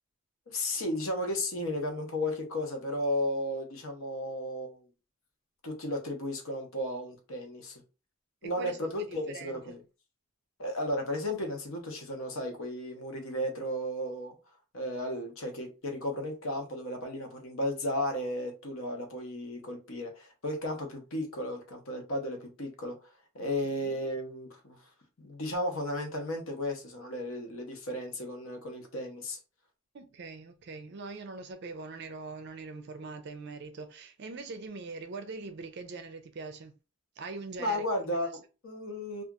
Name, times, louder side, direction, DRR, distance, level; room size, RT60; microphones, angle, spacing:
voice 1, 0.5-4.8 5.6-7.8 8.4-9.8 10.6-14.4 14.7-23.0 23.3-24.9 25.2-29.4 37.6-39.2, left 1 dB, 65° left, 0.8 m, -34 dB
voice 2, 8.4-9.6 23.4-23.5 23.8-24.0 29.9-36.7 37.2-37.8 38.1-38.3, right 3 dB, 50° right, 0.4 m, -42 dB
2.8 x 2.4 x 2.4 m
head